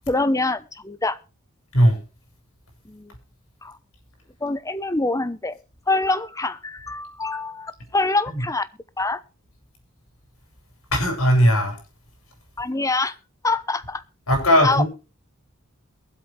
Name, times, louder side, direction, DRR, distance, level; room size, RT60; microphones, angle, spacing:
voice 1, 0.1-1.2 2.9-3.1 3.6-3.8 4.4-5.6 5.9-8.7 9.0-9.2 12.6-13.2 13.4-14.0 14.6-14.8, left 2 dB, 15° left, 14 dB, 0.8 m, -25 dB
voice 2, 10.9-11.8 14.3-14.9, equal, 85° left, 3 dB, 6.2 m, -17 dB
22.5 x 8.0 x 3.3 m, 0.32 s
head